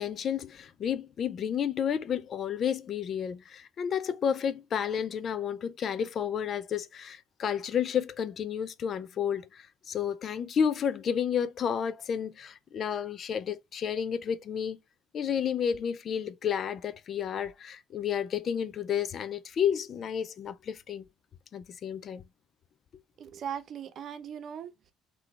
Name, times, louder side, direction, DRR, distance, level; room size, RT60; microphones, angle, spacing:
voice 1, 0.0-14.8 15.1-21.1 21.5-22.2, left 8 dB, 55° left, 0.5 m, -31 dB
voice 2, 23.2-24.9, right 8 dB, 55° right, 0.8 m, -39 dB
3.8 x 3.3 x 3.3 m
hypercardioid pair, 60°, 0 cm